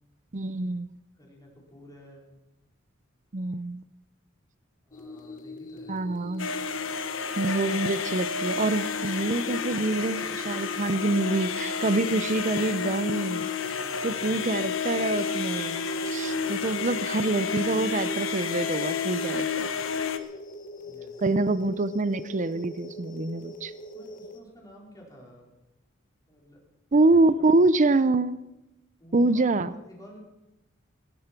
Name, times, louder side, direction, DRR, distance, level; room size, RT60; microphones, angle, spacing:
voice 1, 0.3-0.9 3.3-3.8 5.9-6.5 7.4-13.5 14.0-19.7 21.2-23.7 26.9-28.4 29.1-29.7, right 2 dB, 40° right, 14 dB, 0.6 m, -25 dB
voice 2, 1.2-2.3 4.9-6.0 13.7-14.6 16.3-16.7 20.8-21.1 23.9-25.5 26.3-26.6 27.4-27.7 29.0-30.2, equal, 20° left, -2 dB, 4.5 m, -51 dB
sound 1, 4.9-24.4, left 1 dB, 45° left, 1.4 m, -42 dB
sound 2, 6.4-20.2, left 6 dB, 80° left, 1.1 m, -31 dB
19.0 x 10.5 x 6.0 m, 0.97 s
head